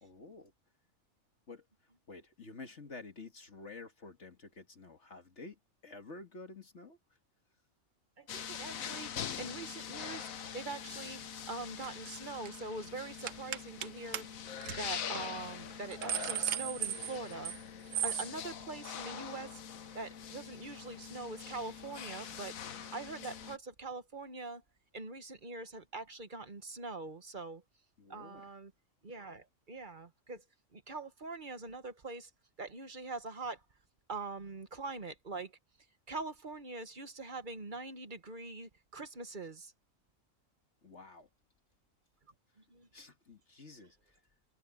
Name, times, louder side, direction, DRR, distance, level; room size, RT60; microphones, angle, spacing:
voice 1, 0.0-0.5 1.5-1.6 2.1-7.0 28.0-28.5 40.8-41.3 42.9-44.2, left 3 dB, 60° left, 2.2 m, -50 dB
voice 2, 8.2-9.1 9.4-11.2 11.5-14.3 14.8-17.5 17.8-19.6 19.9-24.6 24.9-27.6 28.1-28.7 29.0-30.4 30.7-32.3 32.6-33.6 34.1-35.5 36.1-39.7 42.7-42.9, right 3 dB, 40° right, 1.3 m, -43 dB
georgia informationcenter stall, 8.3-23.6, left 8 dB, 85° left, 1.4 m, -44 dB
sound 1, 11.8-12.1 12.3-12.6 13.3-13.9 14.1-14.2 14.6-14.8 15.2-15.3 15.7-17.6 17.9-18.3, right 9 dB, 70° right, 1.2 m, -36 dB
omnidirectional pair, 1.4 m